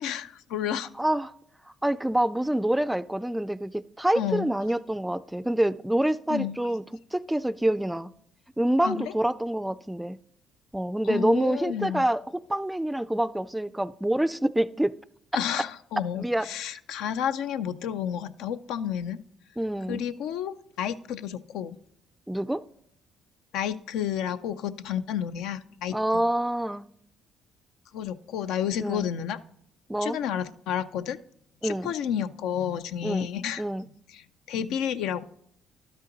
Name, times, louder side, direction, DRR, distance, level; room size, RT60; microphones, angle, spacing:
voice 1, 0.0-0.9 4.1-4.5 6.3-6.6 8.8-9.1 11.0-12.1 15.3-19.2 19.9-21.8 23.5-26.0 27.9-29.4 30.0-31.2 31.6-33.6 34.1-35.2, left 9 dB, 80° left, 11 dB, 0.4 m, -31 dB
voice 2, 1.0-1.3 1.8-6.8 7.1-8.1 8.6-10.2 10.7-14.9 16.2-16.5 19.6-20.0 22.3-22.6 25.9-26.9 28.8-29.1 29.9-30.2 31.6-31.9 33.0-33.3 33.6-33.9, right 1 dB, 5° right, 16 dB, 0.3 m, -26 dB
12.0 x 5.6 x 3.9 m, 0.70 s
supercardioid pair, 75°, 0 cm